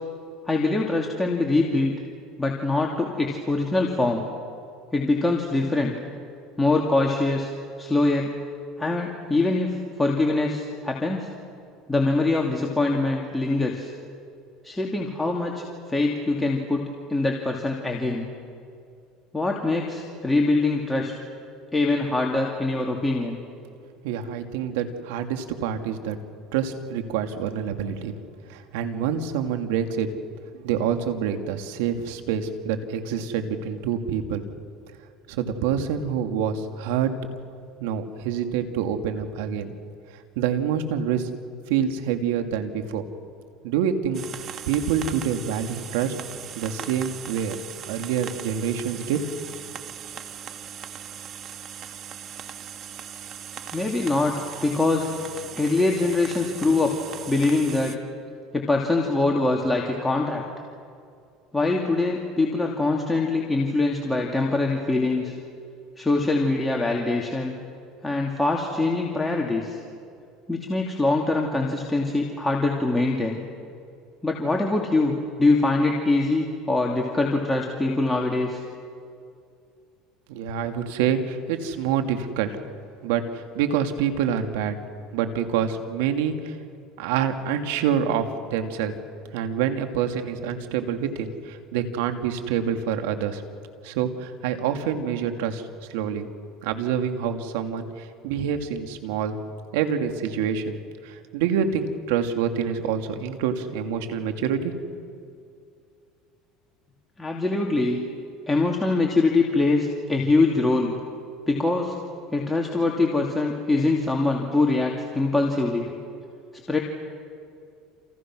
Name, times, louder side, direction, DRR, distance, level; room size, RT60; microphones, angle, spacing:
voice 1, 0.4-1.9 2.4-4.2 4.9-6.0 6.6-7.5 7.8-8.3 8.8-11.3 11.9-13.9 14.6-15.5 15.9-18.3 19.3-21.1 21.7-23.4 53.7-54.3 54.6-55.1 55.6-57.0 57.3-58.0 58.5-60.4 61.5-65.3 66.0-67.5 68.0-69.8 70.5-73.4 74.2-78.6 107.2-108.0 108.5-110.9 111.5-111.9 112.3-115.9 116.7-116.8, left 2 dB, 10° left, -1 dB, 2.8 m, -23 dB
voice 2, 24.0-26.2 26.5-28.1 28.5-30.1 30.6-34.4 35.3-37.1 37.8-39.7 40.4-41.3 41.7-43.0 43.6-44.2 44.7-46.1 46.6-47.6 47.9-49.2 80.3-82.6 83.0-84.7 85.1-86.6 87.0-88.2 88.5-88.9 89.3-93.4 93.8-95.6 95.9-96.3 96.6-99.4 99.7-104.7, right 8 dB, 85° right, 6 dB, 2.5 m, -26 dB
sound 1, 44.1-58.0, right 8 dB, 45° right, 1.7 m, -39 dB
29.5 x 28.0 x 6.3 m, 2.4 s
supercardioid pair, 110°, 0 cm